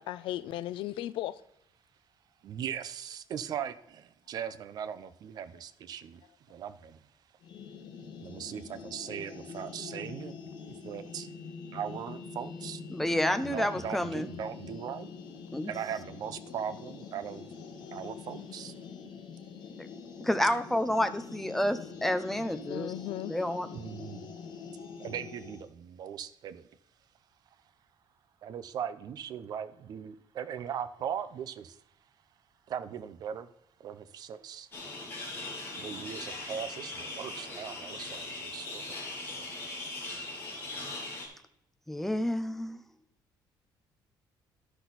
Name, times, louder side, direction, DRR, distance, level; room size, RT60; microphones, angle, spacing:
voice 1, 0.0-1.4 22.7-23.3, left 13 dB, 80° left, 16 dB, 0.5 m, -36 dB
voice 2, 2.4-6.2 6.5-7.1 8.2-10.4 10.7-11.3 11.7-12.8 13.4-15.1 15.6-17.5 17.9-18.7 20.4-20.6 23.7-24.3 25.0-26.7 28.4-31.8 32.7-33.5 33.8-34.7 35.7-38.8 39.3-39.4, right 8 dB, 50° right, 12 dB, 0.6 m, -39 dB
sound 1, 7.4-25.7, left 5 dB, 60° left, 1.1 m, -45 dB
voice 3, 12.9-14.3 15.5-15.7 19.8-19.9 20.2-22.9 23.3-23.7 41.9-42.8, left 1 dB, 5° left, 9 dB, 0.5 m, -29 dB
sound 2, 34.7-41.3, left 2 dB, 25° left, 2.5 m, -40 dB
12.0 x 6.0 x 4.1 m, 0.75 s
cardioid pair, 160°, 9 cm